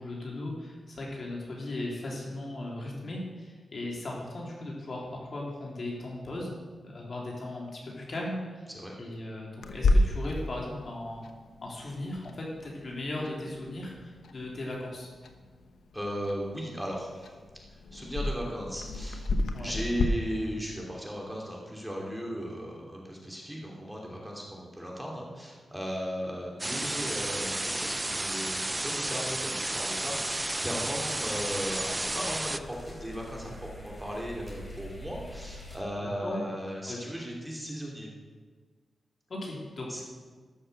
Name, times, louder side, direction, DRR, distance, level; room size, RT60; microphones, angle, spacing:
voice 1, 0.0-6.5 6.8-8.7 9.0-11.2 11.6-15.1 19.5-19.7 36.0-36.4 36.9-37.1 39.3-40.0, left 1 dB, 55° left, -3 dB, 3.3 m, -37 dB
Clock, 9.6-20.0, left 2 dB, 90° left, 0.9 m, -32 dB
voice 2, 15.9-17.4 17.9-19.2 19.6-38.1 39.9-40.0, equal, 5° right, -2 dB, 3.1 m, -36 dB
sound 1, 26.6-32.6, right 2 dB, 20° right, 0.5 m, -32 dB
sound 2, 27.6-27.7 28.0-35.8, equal, 25° left, 3.7 m, -48 dB
13.0 x 6.6 x 6.8 m, 1.5 s
cardioid pair, 65°, 0 cm